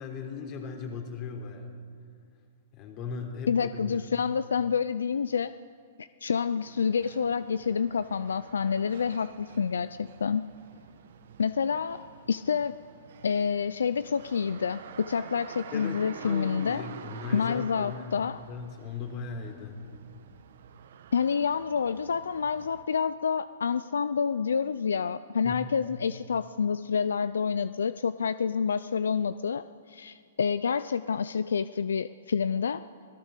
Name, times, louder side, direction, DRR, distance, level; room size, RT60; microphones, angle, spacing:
voice 1, 0.0-1.7 2.7-3.5 3.8-4.0 15.7-18.2 18.5-19.8 25.4-25.7, left 5 dB, 40° left, 3 dB, 3.7 m, -38 dB
voice 2, 3.5-5.5 6.0-10.4 11.4-12.0 12.3-12.7 13.2-16.8 17.3-18.4 21.1-32.8, left 6 dB, 85° left, 14 dB, 0.4 m, -28 dB
sound 1, 6.6-22.8, right 8 dB, 70° right, 1.3 m, -49 dB
25.0 x 16.0 x 6.6 m, 2.2 s
hypercardioid pair, 125°, 0 cm